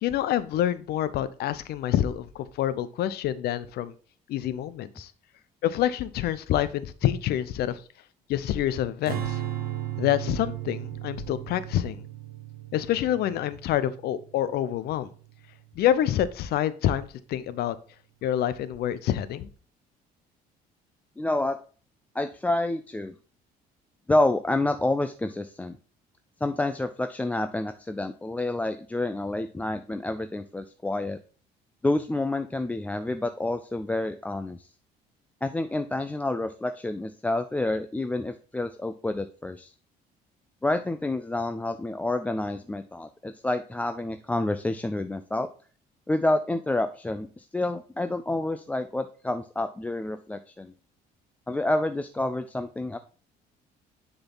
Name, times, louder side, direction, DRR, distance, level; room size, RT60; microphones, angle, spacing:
voice 1, 0.0-3.9 4.3-5.1 5.6-7.8 8.3-9.4 10.0-12.0 12.7-15.1 15.8-17.7 18.2-19.5, left 11 dB, 70° left, 15 dB, 0.6 m, -27 dB
Strum, 9.1-15.4, right 12 dB, 65° right, 1.4 m, -36 dB
voice 2, 21.2-21.6 22.1-23.1 24.1-25.8 26.4-31.2 31.8-34.7 35.4-39.7 40.6-45.5 46.1-50.7 51.5-53.0, left 2 dB, 10° left, 8 dB, 0.3 m, -28 dB
6.8 x 4.0 x 3.9 m, 0.39 s
cardioid pair, 110°, 17 cm